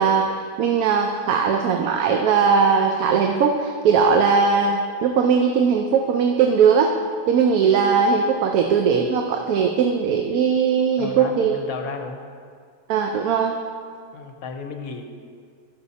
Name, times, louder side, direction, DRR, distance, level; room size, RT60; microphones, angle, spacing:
voice 1, 0.0-7.0 7.3-11.6 12.9-13.5, right 6 dB, 80° right, 3 dB, 1.1 m, -19 dB
voice 2, 11.0-12.2 14.1-15.0, left 4 dB, 75° left, 4 dB, 1.3 m, -33 dB
12.5 x 6.3 x 4.1 m, 2.1 s
omnidirectional pair, 1.5 m